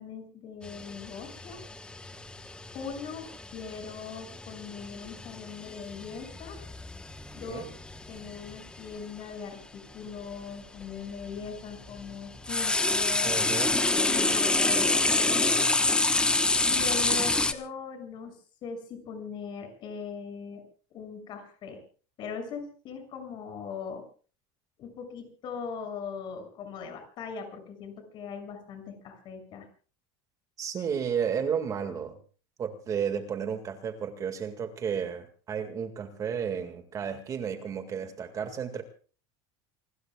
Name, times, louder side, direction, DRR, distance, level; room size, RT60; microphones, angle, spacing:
voice 1, 0.0-1.6 2.7-6.6 7.3-7.7 8.1-13.4 13.9-15.6 16.7-20.6 20.9-21.8 22.2-24.0 24.8-29.7, left 6 dB, 40° left, 6 dB, 6.7 m, -40 dB
sound 1, 0.6-8.8 9.9-10.0 10.8-17.5, left 2 dB, 10° left, 1.2 m, -28 dB
voice 2, 13.2-13.8 30.6-32.1 32.6-38.8, right 7 dB, 30° right, 7 dB, 2.0 m, -32 dB
28.5 x 20.0 x 2.4 m, 0.40 s
cardioid pair, 155°, 12 cm